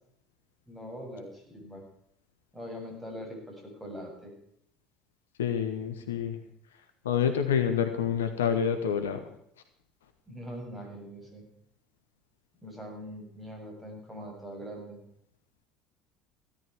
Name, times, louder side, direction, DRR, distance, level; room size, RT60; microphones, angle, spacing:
voice 1, 0.7-1.8 2.5-4.3 10.3-11.5 12.6-15.0, equal, 5° right, 1 dB, 7.4 m, -42 dB
voice 2, 5.4-6.4 7.0-9.2, left 8 dB, 70° left, 7 dB, 1.4 m, -27 dB
16.5 x 13.5 x 4.8 m, 0.71 s
figure-of-eight pair, 65°, 0 cm